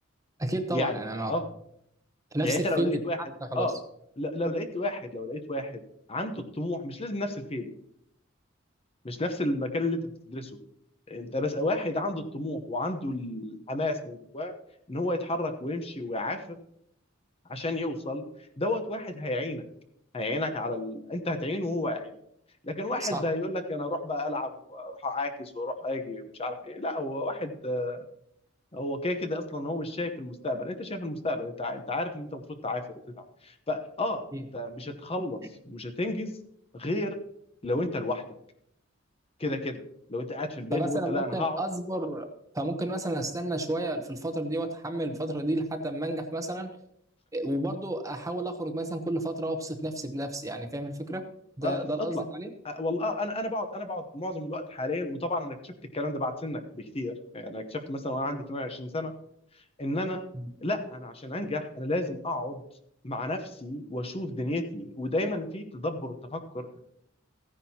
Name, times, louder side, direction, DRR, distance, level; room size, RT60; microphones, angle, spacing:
voice 1, 0.4-1.4 2.3-3.7 23.0-23.3 34.3-34.4 40.7-42.3 42.5-46.7 47.3-51.2 51.6-52.5, right 1 dB, 15° right, 7 dB, 0.8 m, -31 dB
voice 2, 2.4-3.2 3.5-3.8 4.2-5.8 6.1-7.7 9.0-10.0 10.3-10.5 11.1-14.5 14.9-16.6 17.5-18.2 18.6-19.6 20.1-22.1 22.6-28.1 28.7-32.8 33.2-35.4 35.6-36.3 36.7-37.2 37.6-38.2 39.4-39.8 40.1-41.6 51.6-51.9 52.1-52.2 52.6-59.1 59.8-60.2 60.6-62.6 63.0-66.8, left 1 dB, 30° left, 7 dB, 0.9 m, -32 dB
15.0 x 9.9 x 2.9 m, 0.73 s
head